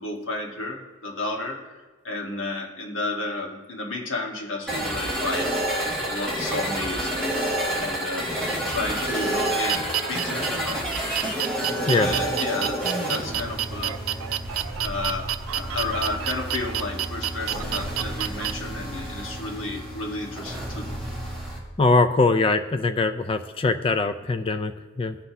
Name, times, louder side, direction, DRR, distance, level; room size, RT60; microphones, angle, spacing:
voice 1, 0.0-1.7 2.0-7.4 7.8-8.3 8.7-10.9 11.7-12.8 13.1-14.2 14.8-20.9, left 2 dB, 70° left, 1 dB, 1.3 m, -32 dB
sound 1, 4.7-21.6, right 1 dB, 5° left, 1.7 m, -29 dB
sound 2, 8.5-18.5, right 11 dB, 80° right, 0.4 m, -30 dB
voice 2, 21.8-25.2, left 3 dB, 25° left, 9 dB, 0.3 m, -22 dB
16.5 x 5.8 x 2.7 m, 1.3 s
head